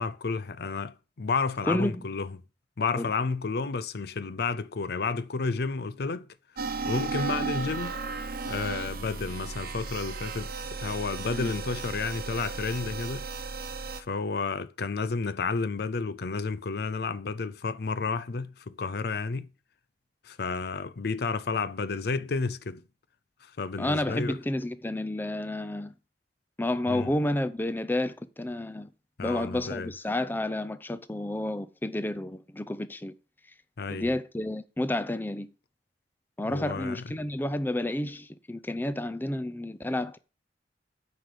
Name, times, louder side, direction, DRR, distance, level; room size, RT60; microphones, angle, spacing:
voice 1, 0.0-2.3 2.8-6.3 6.8-8.0 8.5-13.3 14.0-19.5 20.2-22.8 23.4-24.4 26.9-27.1 29.2-29.9 33.8-34.1 36.5-37.0, left 4 dB, 65° left, 0.6 m, -31 dB
voice 2, 1.7-2.0 3.0-3.1 11.3-11.5 23.8-25.9 26.6-28.9 29.2-33.1 33.9-35.5 36.4-40.2, left 1 dB, 10° left, 0.5 m, -30 dB
sound 1, 6.6-14.0, right 4 dB, 55° right, 0.9 m, -35 dB
9.8 x 5.1 x 6.6 m
head